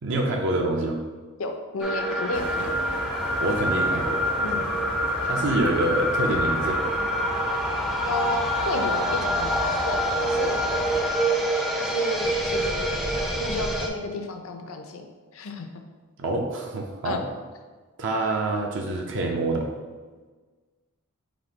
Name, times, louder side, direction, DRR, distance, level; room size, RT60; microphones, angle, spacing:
voice 1, 0.0-1.0 3.4-4.2 5.2-6.8 16.2-17.2 18.0-19.7, right 2 dB, 55° right, 1 dB, 0.5 m, -26 dB
voice 2, 1.4-2.8 4.4-4.6 8.0-10.5 11.8-12.9 13.4-15.1 15.3-15.7 17.0-17.2, left 3 dB, 65° left, 5 dB, 0.5 m, -32 dB
sound 1, 1.8-13.9, right 1 dB, ahead, 0.4 m, -26 dB
sound 2, 2.3-11.1, left 1 dB, 85° left, 0.9 m, -35 dB
4.2 x 2.7 x 4.3 m, 1.4 s
head